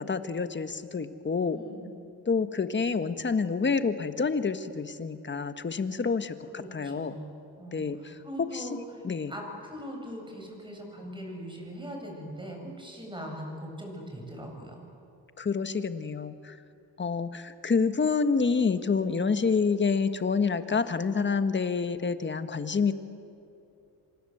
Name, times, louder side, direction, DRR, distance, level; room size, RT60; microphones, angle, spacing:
voice 1, 0.0-1.6 2.2-7.2 7.7-8.8 9.0-9.3 15.4-16.6 17.0-22.9, left 5 dB, 30° left, 10 dB, 1.6 m, -28 dB
voice 2, 1.5-1.9 6.5-7.3 7.6-14.9, equal, 10° right, 1 dB, 7.8 m, -41 dB
27.5 x 26.5 x 8.1 m, 2.7 s
cardioid pair, 115°, 40 cm